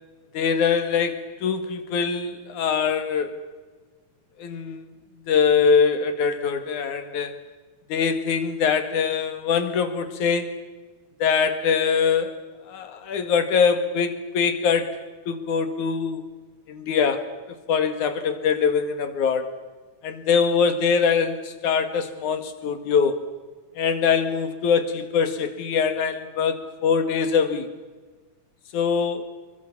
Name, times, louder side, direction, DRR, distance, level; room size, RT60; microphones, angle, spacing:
voice 1, 0.3-3.4 4.4-4.9 5.3-7.4 7.9-10.6 11.2-12.4 12.7-16.2 16.7-17.3 17.7-19.5 20.0-23.2 23.8-27.7 28.7-29.3, left 6 dB, 80° left, 9 dB, 3.4 m, -23 dB
28.0 x 23.5 x 7.2 m, 1.4 s
omnidirectional pair, 3.4 m